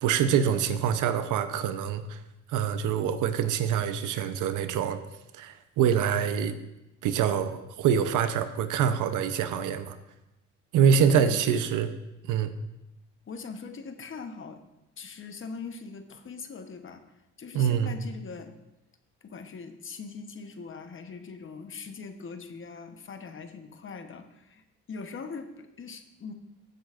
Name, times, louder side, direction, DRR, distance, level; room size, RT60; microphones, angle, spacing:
voice 1, 0.0-2.2 2.5-5.0 5.4-6.6 7.0-10.0 10.7-11.9 12.3-12.5 17.5-17.9, right 8 dB, 85° right, 10 dB, 0.8 m, -25 dB
voice 2, 11.1-11.6 13.3-14.6 15.0-17.0 17.4-18.5 19.2-26.3, left 5 dB, 40° left, 7 dB, 1.0 m, -41 dB
15.5 x 7.7 x 2.5 m, 0.94 s
cardioid pair, 90°, 30 cm